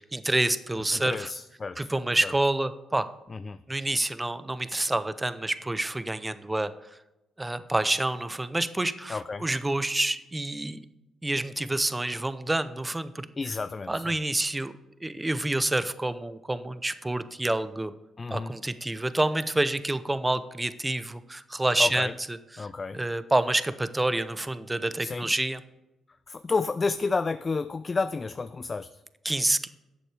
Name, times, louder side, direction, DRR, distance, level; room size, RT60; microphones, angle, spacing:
voice 1, 0.0-1.3 1.8-3.1 3.7-7.0 7.4-10.8 11.2-13.3 13.9-14.7 15.0-17.9 18.3-22.7 22.9-25.6 29.2-29.7, right 2 dB, 15° right, 13 dB, 0.6 m, -28 dB
voice 2, 0.9-1.9 2.2-2.3 3.3-3.6 9.1-9.4 13.4-14.1 18.2-18.5 21.8-22.1 22.6-23.0 25.0-25.3 26.3-28.9, left 4 dB, 30° left, 12 dB, 0.3 m, -31 dB
11.5 x 7.6 x 3.3 m, 0.97 s
cardioid pair, 90°, 0 cm